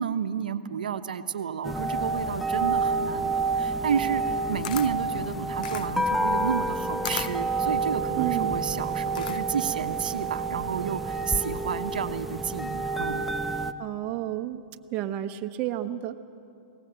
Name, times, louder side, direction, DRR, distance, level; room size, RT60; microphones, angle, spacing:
voice 1, 0.0-13.2, right 7 dB, 85° right, 9 dB, 0.9 m, -31 dB
sound 1, 1.6-13.7, right 3 dB, ahead, 0.7 m, -29 dB
Camera, 4.2-9.7, left 10 dB, 70° left, 0.9 m, -38 dB
voice 2, 8.2-8.5 13.8-14.6 14.9-16.2, right 13 dB, 35° right, 6 dB, 1.0 m, -31 dB
21.5 x 18.5 x 8.0 m, 2.7 s
hypercardioid pair, 125°, 5 cm